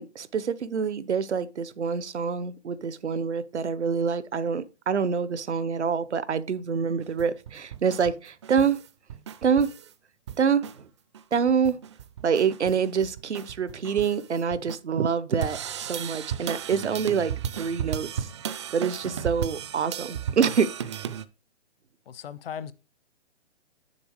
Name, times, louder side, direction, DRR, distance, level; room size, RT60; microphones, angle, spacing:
voice 1, 0.0-8.8 9.4-9.7 10.4-10.9 11.3-11.7 12.2-21.0, right 6 dB, 80° right, 1.0 m, -26 dB
sound 1, 7.0-9.9 10.3-10.8 11.1-11.2 11.5-14.8 15.4-21.3, right 9 dB, 25° right, 0.4 m, -35 dB
voice 2, 22.1-22.7, left 8 dB, 60° left, 0.8 m, -37 dB
7.0 x 7.0 x 4.8 m
hypercardioid pair, 140°, 34 cm